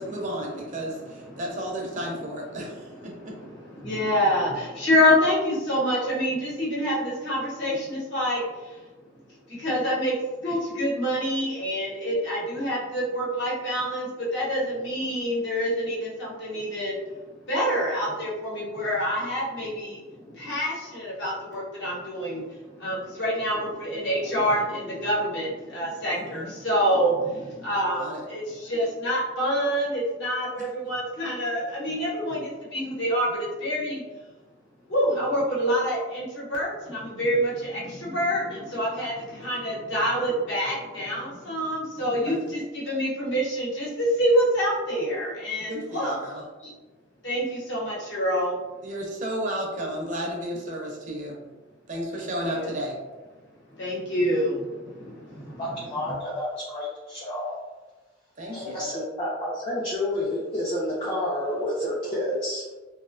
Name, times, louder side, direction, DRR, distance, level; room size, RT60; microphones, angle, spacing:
voice 1, 0.0-3.4 3.7-3.8 26.1-26.5 28.0-28.2 42.3-42.4 45.7-46.4 48.8-51.5 51.9-52.9 58.4-58.9, equal, 40° right, -1 dB, 0.5 m, -33 dB
voice 2, 3.1-8.8 9.5-17.2 17.5-34.0 34.9-46.2 46.6-46.7 47.2-48.6 52.2-52.7 53.7-55.6, equal, 60° left, -6 dB, 0.9 m, -27 dB
voice 3, 55.6-57.5 58.5-62.6, left 1 dB, 25° left, -8 dB, 0.4 m, -29 dB
2.5 x 2.0 x 2.4 m, 1.2 s
head